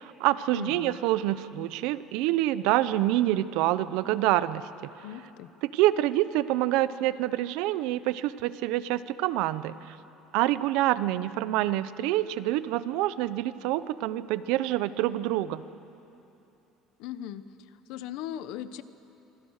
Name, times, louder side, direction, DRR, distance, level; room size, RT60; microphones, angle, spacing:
voice 1, 0.0-4.7 5.6-10.0 10.3-15.6, right 15 dB, 75° right, 15 dB, 0.8 m, -26 dB
voice 2, 0.5-1.0 5.0-5.5 17.0-17.4 17.9-18.8, left 11 dB, 75° left, 13 dB, 1.0 m, -38 dB
26.5 x 25.0 x 6.5 m, 2.9 s
cardioid pair, 150°, 0 cm